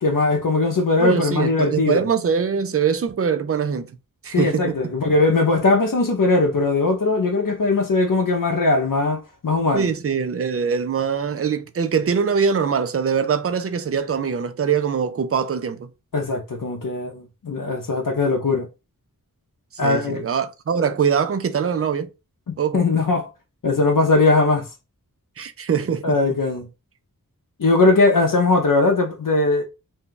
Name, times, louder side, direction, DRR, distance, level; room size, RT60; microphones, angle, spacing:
voice 1, 0.0-2.0 4.3-9.9 16.1-18.7 19.8-20.2 22.5-23.3 23.6-24.7 26.0-26.7 27.6-29.6, left 3 dB, 60° left, 0.6 m, -20 dB
voice 2, 1.0-3.9 4.2-4.8 9.7-15.9 19.8-22.1 22.6-22.8 25.4-26.2, right 6 dB, 40° right, 0.4 m, -23 dB
2.6 x 2.3 x 3.7 m
wide cardioid pair, 50°, 36 cm